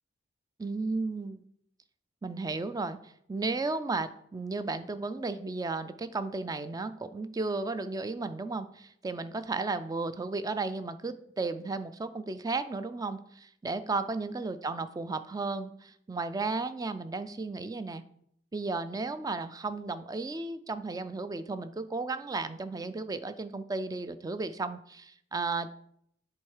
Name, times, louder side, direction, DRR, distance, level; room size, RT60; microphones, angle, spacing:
voice 1, 0.6-1.4 2.2-18.0 18.5-25.7, right 3 dB, 20° right, 12 dB, 0.3 m, -34 dB
7.5 x 3.5 x 4.7 m, 0.68 s
head